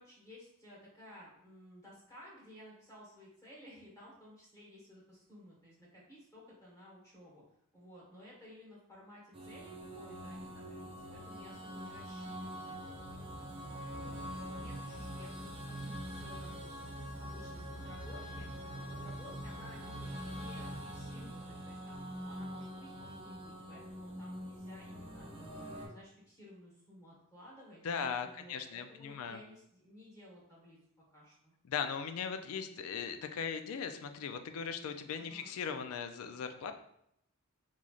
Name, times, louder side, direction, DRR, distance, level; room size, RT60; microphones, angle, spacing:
voice 1, 0.0-7.4 7.7-13.4 13.9-16.6 17.2-18.5 18.9-25.3 25.7-27.8 28.2-30.8 31.1-31.5 35.1-35.5, left 1 dB, 15° left, -6 dB, 1.2 m, -55 dB
sound 1, 9.3-25.9, equal, 25° right, 0.5 m, -44 dB
voice 2, 27.8-29.4 31.7-36.7, left 6 dB, 75° left, 8 dB, 0.4 m, -38 dB
3.8 x 3.1 x 2.4 m, 0.76 s
head